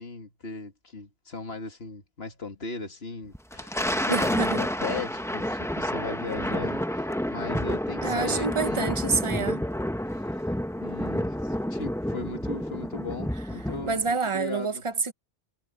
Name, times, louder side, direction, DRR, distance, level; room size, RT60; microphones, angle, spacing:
voice 1, 0.0-8.9 10.2-10.4 10.8-14.8, left 3 dB, 60° left, 2.3 m, -38 dB
Thunder, 3.3-14.1, equal, 5° left, 0.6 m, -29 dB
voice 2, 4.1-4.6 8.0-9.6 13.8-15.1, right 4 dB, 35° right, 0.5 m, -27 dB
omnidirectional pair, 1.2 m